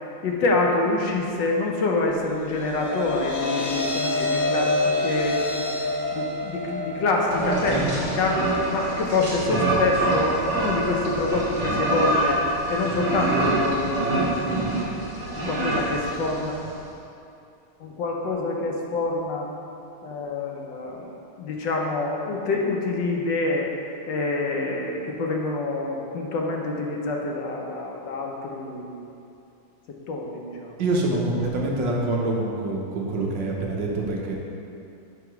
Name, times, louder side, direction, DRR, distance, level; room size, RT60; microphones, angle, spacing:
voice 1, 0.2-5.7 6.1-12.4 12.7-15.0 15.4-16.6 17.8-19.5 20.0-23.7 24.1-29.1 29.9-30.7, left 3 dB, 70° left, 0 dB, 1.3 m, -26 dB
sound 1, 2.3-14.7, left 2 dB, 90° left, 0.7 m, -30 dB
sound 2, 7.3-16.7, right 2 dB, 50° right, 2.2 m, -26 dB
voice 2, 30.8-34.4, right 2 dB, 65° right, -2 dB, 1.4 m, -25 dB
5.5 x 4.8 x 4.6 m, 2.7 s
omnidirectional pair, 2.2 m